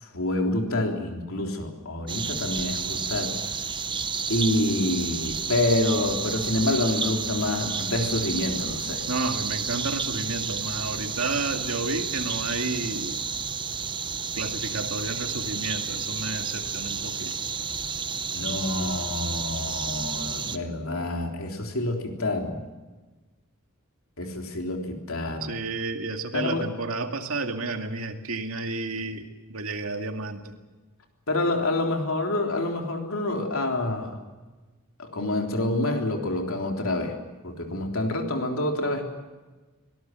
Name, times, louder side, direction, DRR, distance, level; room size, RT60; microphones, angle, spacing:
voice 1, 0.0-3.4 4.3-9.1 18.3-22.6 24.2-25.6 26.3-26.7 31.3-34.2 35.0-37.2 37.4-39.0, left 2 dB, 70° left, 2 dB, 3.6 m, -27 dB
sound 1, 2.1-20.6, right 6 dB, 20° right, 0.9 m, -31 dB
voice 2, 9.1-13.2 14.3-17.3 25.4-30.5, right 3 dB, 70° right, 5 dB, 2.3 m, -31 dB
24.5 x 18.0 x 7.7 m, 1.3 s
head